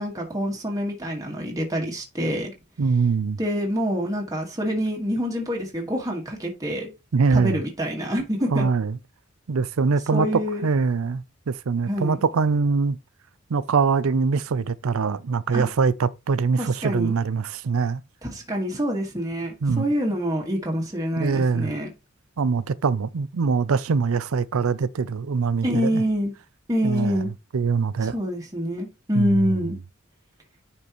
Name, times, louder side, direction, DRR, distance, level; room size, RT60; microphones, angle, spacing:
voice 1, 0.0-2.5 3.4-6.9 7.3-8.7 10.1-10.7 11.9-12.2 15.5-15.7 16.6-17.1 18.3-21.9 25.6-26.3 26.7-27.3 28.0-29.8, equal, 15° right, 1.7 m, -26 dB
voice 2, 2.8-3.4 7.1-7.6 8.5-9.0 9.5-13.0 13.5-18.0 19.6-19.8 21.2-21.7 22.4-26.0 26.8-27.2 27.5-28.1 29.1-29.6, right 5 dB, 90° right, 0.5 m, -23 dB
9.9 x 4.4 x 3.0 m
head